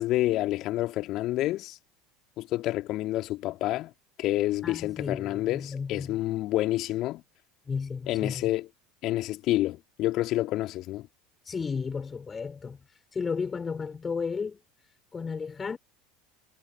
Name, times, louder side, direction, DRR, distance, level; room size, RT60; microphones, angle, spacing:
voice 1, 0.0-1.8 2.4-3.9 4.2-7.2 8.1-8.7 9.0-11.1, left 16 dB, 50° left, 2.7 m, -28 dB
voice 2, 4.6-6.2 7.7-8.5 11.4-12.8 13.1-14.6 15.1-15.8, left 5 dB, 25° left, 3.6 m, -33 dB
figure-of-eight pair, 70°, 0 cm